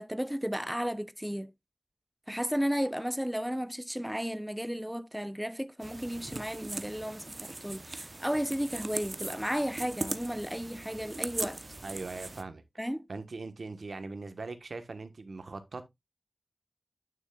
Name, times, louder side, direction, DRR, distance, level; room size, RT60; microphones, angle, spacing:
voice 1, 0.0-1.5 2.3-11.6 12.8-13.1, equal, 5° right, 0.5 m, -34 dB
sound 1, 5.8-12.4, right 2 dB, 45° right, 0.8 m, -40 dB
voice 2, 11.8-12.6 13.1-15.9, right 3 dB, 80° right, 1.1 m, -40 dB
9.1 x 6.7 x 2.3 m
wide cardioid pair, 60°, 0 cm